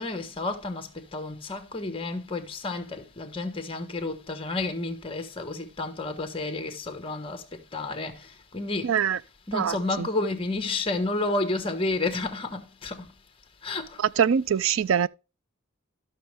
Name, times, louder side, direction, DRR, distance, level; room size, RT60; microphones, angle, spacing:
voice 1, 0.0-7.4 7.7-8.2 8.5-8.9 9.5-13.1 13.6-14.0, left 2 dB, 25° left, 1.3 m, -31 dB
voice 2, 8.8-9.2 9.5-10.1 14.0-15.1, right 8 dB, 65° right, 0.4 m, -24 dB
13.5 x 6.4 x 3.3 m
head